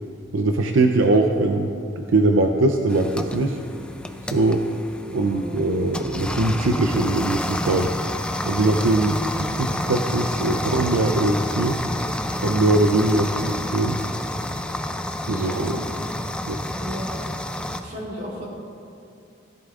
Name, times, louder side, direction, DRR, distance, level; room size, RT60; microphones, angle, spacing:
voice 1, 0.3-3.6 4.3-4.6 5.1-7.9 8.5-11.8 12.4-14.0 15.2-15.8 16.5-16.6, right 2 dB, 85° right, 4 dB, 0.6 m, -21 dB
sound 1, 2.9-17.8, left 1 dB, 5° left, 0.4 m, -29 dB
voice 2, 5.1-5.6 15.3-15.7 16.8-17.1 17.8-18.5, equal, 45° right, -4 dB, 2.9 m, -35 dB
16.5 x 11.0 x 2.4 m, 2.5 s
head